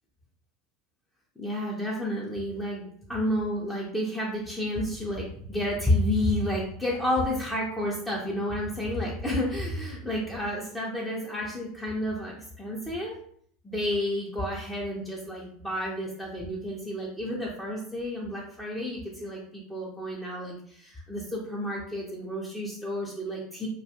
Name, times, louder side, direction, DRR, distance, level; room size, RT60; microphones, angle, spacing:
voice 1, 1.4-13.1 13.6-23.7, left 1 dB, 5° left, -4 dB, 0.6 m, -30 dB
2.4 x 2.3 x 2.8 m, 0.63 s
hypercardioid pair, 100°, 0 cm